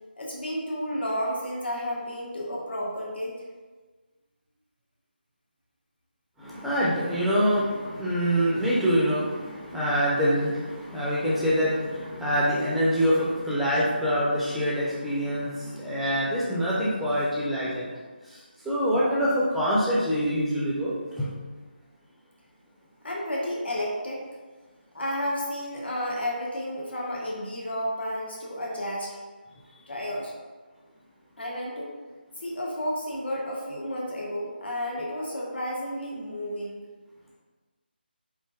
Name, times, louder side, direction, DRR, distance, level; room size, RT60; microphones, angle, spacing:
voice 1, 0.2-3.3 23.0-24.2 24.9-29.2 29.9-30.3 31.4-31.9 32.4-36.8, equal, 75° left, -4 dB, 1.0 m, -31 dB
voice 2, 6.4-17.9 18.2-21.3, equal, ahead, -8 dB, 0.4 m, -25 dB
4.3 x 2.6 x 2.3 m, 1.3 s
figure-of-eight pair, 160°, 6 cm